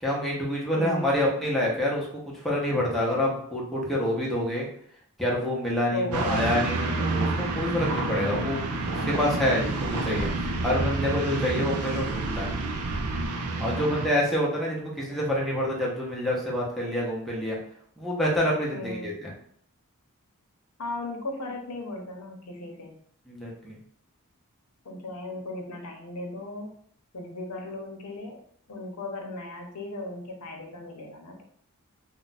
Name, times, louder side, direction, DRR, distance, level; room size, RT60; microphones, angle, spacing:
voice 1, 0.0-4.7 5.2-12.5 13.6-17.6 18.0-19.3 23.3-23.8, left 1 dB, ahead, -5 dB, 0.8 m, -27 dB
voice 2, 0.7-1.3 5.9-7.2 11.5-12.0 13.7-14.2 18.7-19.1 20.8-23.0 24.8-26.7 27.1-28.4 28.7-31.4, left 1 dB, 85° left, 2 dB, 0.8 m, -36 dB
sound 1, 6.1-14.1, right 3 dB, 75° right, 0.4 m, -29 dB
2.5 x 2.2 x 3.9 m, 0.63 s
head